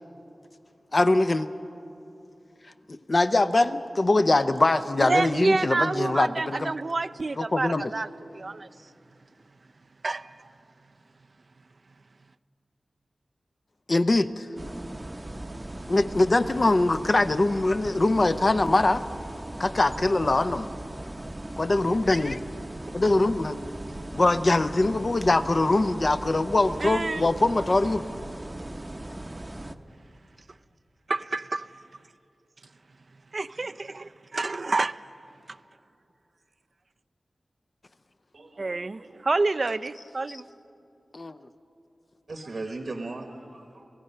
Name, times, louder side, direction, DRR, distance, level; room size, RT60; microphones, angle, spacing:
voice 1, 0.9-1.5 2.9-6.7 7.4-7.9 13.9-14.5 15.9-19.0 19.6-20.7 21.6-22.4 22.9-23.6 24.1-28.0 41.1-41.3, left 2 dB, 40° left, 9 dB, 0.6 m, -23 dB
voice 2, 5.0-8.9 10.0-10.5 22.9-23.0 26.8-27.4 31.1-31.9 33.3-35.0 35.5-35.6 38.6-40.4, right 3 dB, 50° right, 12 dB, 0.4 m, -28 dB
sound 1, 14.6-29.7, right 1 dB, 20° right, 0.8 m, -38 dB
voice 3, 38.3-39.2 42.3-43.9, right 2 dB, 65° right, 4 dB, 1.2 m, -38 dB
29.0 x 16.0 x 5.6 m, 2.7 s
wide cardioid pair, 85°, 0 cm